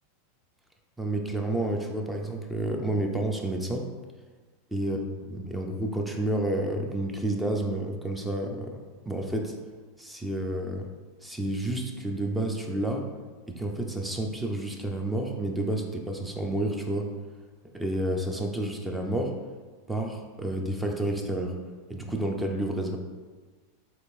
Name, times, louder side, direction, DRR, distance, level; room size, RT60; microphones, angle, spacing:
voice 1, 1.0-3.9 4.7-8.8 9.1-9.6 10.0-10.9 11.2-13.1 13.5-17.1 17.7-19.3 19.9-21.6 21.9-23.0, right 1 dB, 5° right, 2 dB, 0.5 m, -30 dB
4.3 x 3.2 x 2.6 m, 1.4 s
hypercardioid pair, 100°, 0 cm